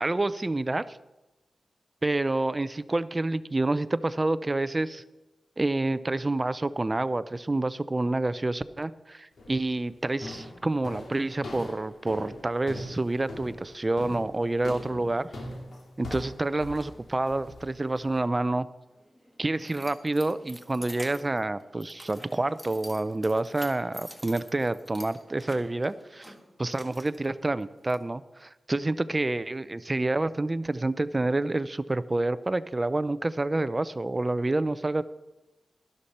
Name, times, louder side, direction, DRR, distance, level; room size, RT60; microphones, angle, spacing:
voice 1, 0.0-1.0 2.0-5.0 5.6-15.3 16.0-18.7 19.4-26.3 26.6-35.0, right 2 dB, 25° right, 15 dB, 0.5 m, -28 dB
sound 1, 9.4-9.7 10.2-18.2, left 1 dB, 75° left, 2.5 m, -41 dB
Keys jangling, 18.9-27.9, equal, ahead, 1.6 m, -48 dB
13.0 x 11.5 x 4.3 m, 1.0 s
wide cardioid pair, 115°, 0 cm